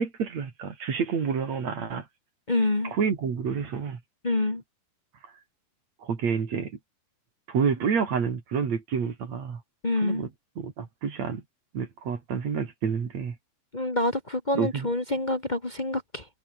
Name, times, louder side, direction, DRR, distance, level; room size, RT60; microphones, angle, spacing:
voice 1, 0.0-2.1 2.9-4.0 6.0-6.8 7.5-9.6 10.0-10.3 10.6-11.4 11.7-13.4 14.6-14.9, right 6 dB, 50° right, 3.8 m, -28 dB
voice 2, 2.5-2.9 4.2-4.6 9.8-10.3 13.7-16.3, left 2 dB, 30° left, 0.8 m, -27 dB
omnidirectional pair, 4.2 m